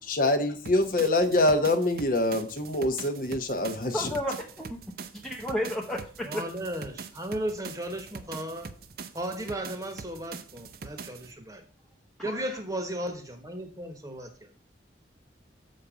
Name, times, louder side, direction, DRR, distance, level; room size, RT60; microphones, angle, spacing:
voice 1, 0.1-4.1, left 2 dB, 45° left, 8 dB, 0.9 m, -25 dB
sound 1, 0.7-11.3, right 5 dB, 50° right, 0.6 m, -43 dB
voice 2, 3.9-4.8 5.2-6.4 12.2-12.6, left 1 dB, ahead, -1 dB, 0.7 m, -32 dB
voice 3, 6.2-8.7 9.1-11.6 12.2-14.5, right 1 dB, 20° right, 6 dB, 1.1 m, -35 dB
7.0 x 5.2 x 4.9 m, 0.41 s
head